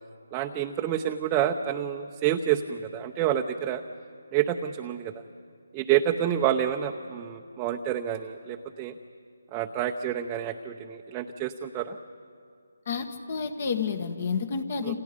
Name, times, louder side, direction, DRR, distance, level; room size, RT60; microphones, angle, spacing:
voice 1, 0.3-3.8 4.3-5.1 5.7-8.9 9.5-12.0 14.8-14.9, right 10 dB, 20° right, 4 dB, 0.8 m, -28 dB
voice 2, 12.9-14.9, left 5 dB, 45° left, 8 dB, 1.8 m, -30 dB
28.5 x 27.5 x 5.3 m, 2.3 s
figure-of-eight pair, 155°, 0 cm